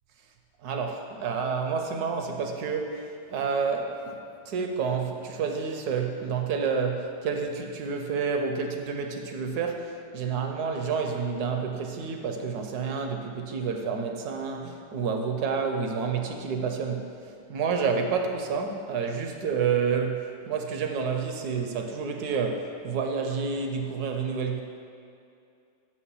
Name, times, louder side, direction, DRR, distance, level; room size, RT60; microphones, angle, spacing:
voice 1, 0.6-4.2 4.5-17.1 17.5-24.6, right 5 dB, 70° right, 4 dB, 1.0 m, -29 dB
6.5 x 5.7 x 5.4 m, 2.5 s
omnidirectional pair, 2.0 m